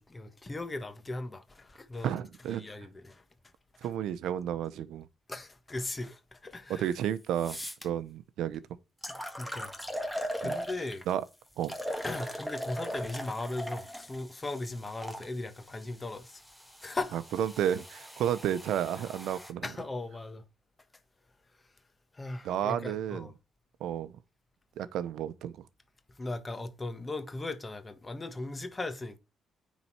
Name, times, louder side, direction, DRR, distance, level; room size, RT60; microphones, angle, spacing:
voice 1, 0.0-2.2 2.5-3.2 3.8-3.9 5.3-6.9 9.1-9.7 10.4-11.0 12.0-16.4 16.8-17.2 19.6-20.4 22.1-23.3 26.2-29.2, left 2 dB, 25° left, 1.5 m, -38 dB
voice 2, 2.0-2.6 3.8-5.1 6.7-7.6 7.8-8.6 10.4-10.6 11.1-11.2 11.6-11.8 17.1-19.7 22.4-23.3 23.8-24.1 24.8-25.6, right 10 dB, 80° right, 0.7 m, -32 dB
sound 1, 6.9-7.0 7.4-7.9 8.5-8.6 9.0-11.1 11.6-15.3 16.1-19.5, equal, ahead, 1.7 m, -39 dB
9.6 x 4.1 x 4.7 m
cardioid pair, 90°, 0 cm